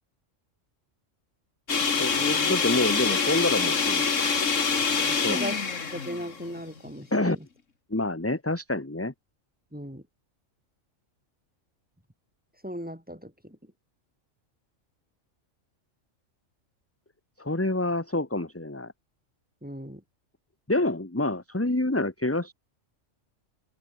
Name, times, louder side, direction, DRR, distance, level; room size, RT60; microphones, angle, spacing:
sound 1, 1.7-6.9, left 5 dB, 70° left, 2.2 m, -25 dB
voice 1, 2.0-4.1 5.2-5.4 7.1-7.4 7.9-9.1 17.4-18.9 20.7-22.5, left 2 dB, 10° left, 1.5 m, -27 dB
voice 2, 5.0-5.6 5.9-7.5 9.7-10.0 12.6-13.6 19.6-20.0, equal, 5° right, 4.4 m, -37 dB
omnidirectional pair, 1.3 m